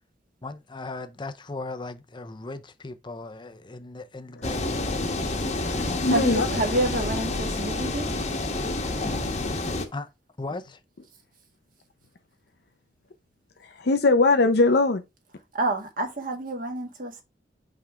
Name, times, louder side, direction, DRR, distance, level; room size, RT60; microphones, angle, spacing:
voice 1, 0.4-4.7 9.9-10.1 10.4-10.8, left 3 dB, 25° left, 0.6 m, -37 dB
sound 1, 4.4-9.8, left 2 dB, 40° left, 1.1 m, -28 dB
voice 2, 5.5-6.5 13.8-15.0, left 3 dB, 65° left, 0.6 m, -21 dB
voice 3, 6.1-8.1 15.5-17.2, right 1 dB, 50° right, 1.7 m, -28 dB
5.7 x 3.5 x 4.8 m
head